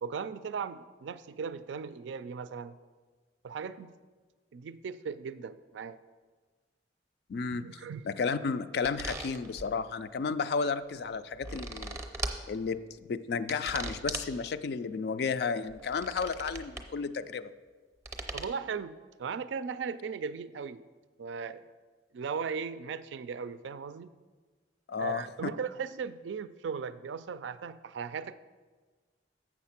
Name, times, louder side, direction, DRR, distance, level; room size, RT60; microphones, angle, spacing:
voice 1, 0.0-2.8 3.4-3.9 4.5-6.0 7.5-8.1 18.3-20.8 21.2-21.6 22.1-24.1 25.0-28.3, right 6 dB, 80° right, 13 dB, 0.4 m, -37 dB
voice 2, 7.3-7.7 8.1-12.0 12.5-17.5 24.9-25.2, left 5 dB, 60° left, 12 dB, 0.3 m, -32 dB
sound 1, 8.8-9.7 11.1-12.4 13.5-14.3 15.7-16.9 18.1-18.5, right 2 dB, 15° right, 0.6 m, -38 dB
7.2 x 6.3 x 5.8 m, 1.4 s
head